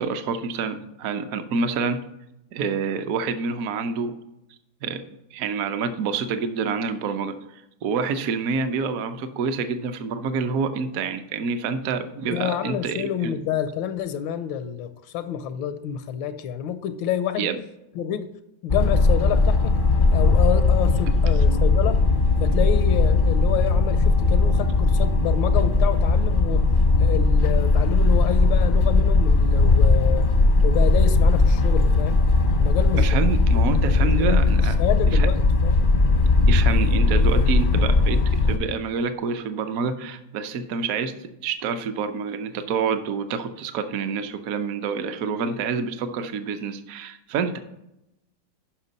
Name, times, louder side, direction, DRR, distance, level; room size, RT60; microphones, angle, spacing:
voice 1, 0.0-2.0 2.5-4.1 4.8-5.0 5.3-13.3 17.4-17.6 33.0-34.7 35.1-35.3 36.5-41.1 41.4-47.6, right 5 dB, 60° right, 9 dB, 1.0 m, -27 dB
voice 2, 12.3-17.5 18.0-18.3 18.6-19.7 20.1-22.0 22.4-26.6 27.0-30.3 30.6-32.2 32.5-33.1 34.0-35.9, left 10 dB, 90° left, 11 dB, 1.4 m, -28 dB
sound 1, 18.7-38.6, left 3 dB, 50° left, 0.6 m, -18 dB
10.5 x 5.7 x 4.0 m, 0.86 s
omnidirectional pair, 2.0 m